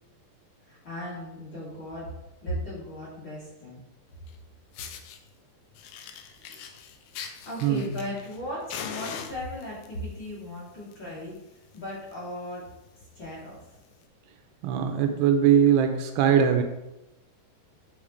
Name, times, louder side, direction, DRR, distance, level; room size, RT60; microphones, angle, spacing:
voice 1, 0.7-2.1 2.4-3.8 7.1-12.7 13.1-13.6, left 1 dB, 30° left, -8 dB, 3.3 m, -37 dB
Fire, 4.3-4.4 4.7-5.2 5.7-8.4 8.7-9.9 10.7-10.9 11.3-11.4 11.7-11.8 12.1-12.3 12.9-13.0 13.9-14.0, left 7 dB, 90° left, 1.9 m, -40 dB
voice 2, 7.6-7.9 14.6-16.6, right 8 dB, 80° right, 6 dB, 2.8 m, -21 dB
8.6 x 7.5 x 3.2 m, 0.92 s
omnidirectional pair, 4.8 m